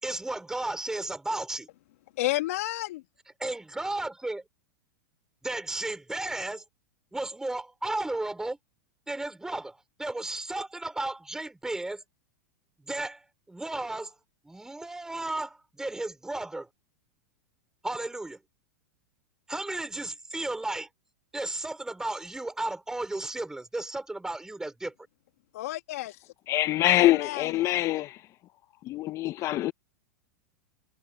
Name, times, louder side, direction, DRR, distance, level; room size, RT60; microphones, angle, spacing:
voice 1, 0.0-1.7 3.4-4.4 5.4-6.6 7.1-8.6 9.1-12.0 12.9-14.2 14.4-16.7 17.8-18.4 19.5-20.9 21.3-24.9, right 2 dB, 5° right, 5.2 m, -34 dB
voice 2, 2.2-3.0 25.5-26.2 26.9-27.5, left 17 dB, 65° left, 1.6 m, -31 dB
voice 3, 26.5-28.2 28.8-29.7, left 15 dB, 40° left, 0.8 m, -24 dB
hypercardioid pair, 105°, 8 cm